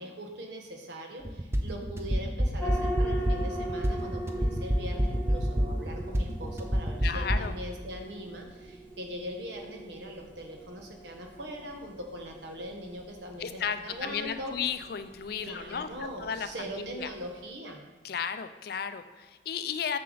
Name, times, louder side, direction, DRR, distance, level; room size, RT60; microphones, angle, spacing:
voice 1, 0.0-14.5 15.4-17.8, equal, 70° right, 2 dB, 1.2 m, -41 dB
sound 1, 1.2-7.5, equal, 15° right, 0.5 m, -28 dB
sound 2, 2.6-17.4, right 1 dB, 10° left, 1.0 m, -41 dB
voice 2, 7.0-7.5 13.4-15.9 16.2-16.5 16.8-17.1 18.0-20.0, left 7 dB, 55° left, 10 dB, 0.4 m, -34 dB
6.7 x 6.5 x 3.9 m, 1.2 s
head